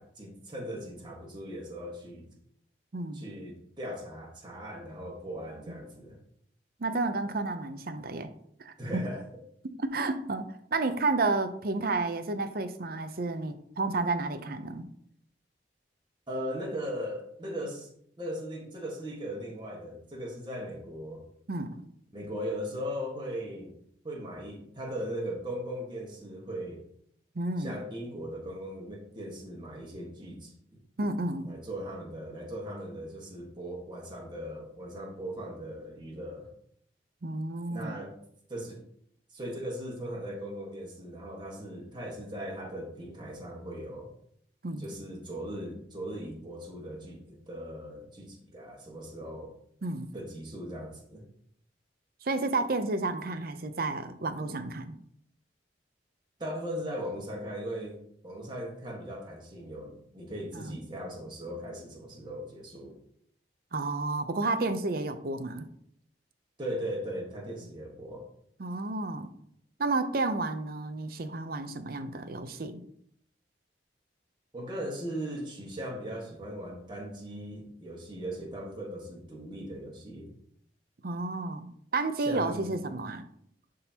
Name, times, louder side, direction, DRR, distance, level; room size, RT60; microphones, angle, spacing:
voice 1, 0.0-2.3 3.1-6.2 8.8-9.2 16.3-17.9 18.2-21.2 22.1-23.8 24.0-26.8 27.6-30.5 31.4-36.5 37.7-38.2 38.5-38.8 39.3-44.1 44.8-49.5 50.1-51.2 56.4-62.9 66.6-68.3 74.5-80.3 82.2-82.7, equal, 25° right, -1 dB, 1.5 m, -38 dB
voice 2, 2.9-3.2 6.8-8.3 8.6-8.7 9.8-14.9 21.5-21.8 27.3-27.8 31.0-31.5 37.2-38.0 44.6-44.9 49.8-50.1 52.2-54.9 60.5-60.8 63.7-65.6 68.6-69.3 69.8-72.8 81.0-83.2, right 3 dB, 55° right, 9 dB, 0.6 m, -31 dB
11.0 x 3.8 x 2.9 m, 0.69 s
head